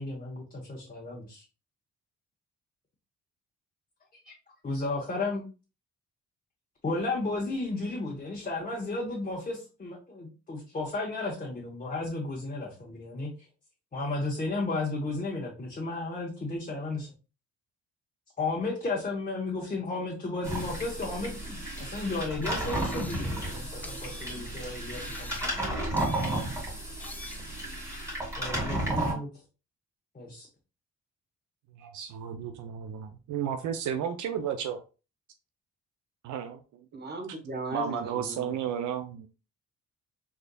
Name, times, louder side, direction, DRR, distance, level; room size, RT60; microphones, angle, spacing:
voice 1, 0.0-1.4 4.2-4.3 4.6-5.4 6.8-13.3 13.9-17.1 18.4-26.0 28.4-29.3 30.1-30.5, left 2 dB, 25° left, -4 dB, 1.1 m, -33 dB
sound 1, 20.4-29.1, right 1 dB, 10° right, 2.2 m, -33 dB
sound 2, 21.8-21.9 22.4-23.4 23.8-24.6 24.9-25.7 26.0-26.6 27.0-27.5, left 2 dB, 5° left, 0.4 m, -46 dB
voice 2, 31.8-34.8 36.2-36.5 37.7-39.3, right 8 dB, 80° right, 7 dB, 0.5 m, -33 dB
voice 3, 36.9-38.5, right 3 dB, 35° right, 4 dB, 1.1 m, -37 dB
3.8 x 3.5 x 2.2 m, 0.32 s
cardioid pair, 90°, 30 cm